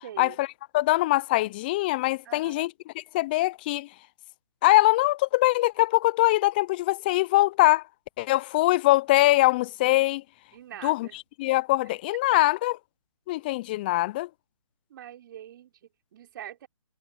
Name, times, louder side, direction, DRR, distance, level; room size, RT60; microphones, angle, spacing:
voice 1, 0.0-0.4 2.2-2.7 10.5-11.2 11.8-11.9 12.3-12.4 14.9-16.7, right 11 dB, 40° right, 4.9 m, -44 dB
voice 2, 0.7-2.7 3.1-3.9 4.6-7.8 8.2-10.2 10.8-11.1 11.4-12.8 13.3-14.3, left 18 dB, 15° left, 0.5 m, -22 dB
figure-of-eight pair, 150°, 17 cm